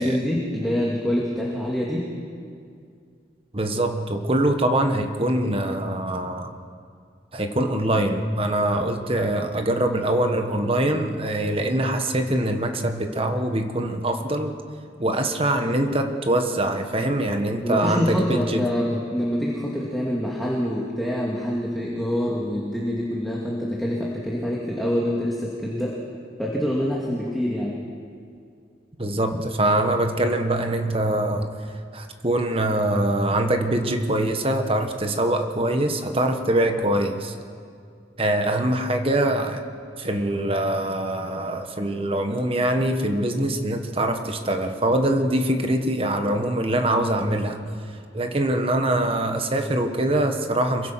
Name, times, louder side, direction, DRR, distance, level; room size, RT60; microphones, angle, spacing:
voice 1, 0.0-2.0 17.6-26.0 26.4-27.7, equal, ahead, -5 dB, 2.4 m, -25 dB
voice 2, 3.5-6.6 7.3-14.5 15.0-18.6 29.0-31.5 31.9-37.3 38.2-39.6 40.0-47.6 48.1-50.9, right 1 dB, 30° right, 5 dB, 1.6 m, -23 dB
26.5 x 22.5 x 6.0 m, 2.3 s
head